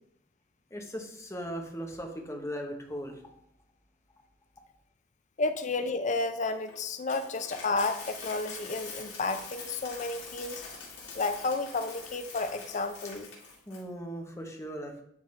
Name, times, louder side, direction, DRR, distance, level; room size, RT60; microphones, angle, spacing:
voice 1, 0.7-3.3 13.7-15.0, equal, 15° left, 2 dB, 0.9 m, -38 dB
voice 2, 5.4-10.6 11.1-13.3, left 3 dB, 40° left, 9 dB, 0.5 m, -31 dB
Coin (dropping), 6.4-13.8, left 4 dB, 80° left, 2.5 m, -44 dB
10.5 x 3.7 x 3.2 m, 0.72 s
head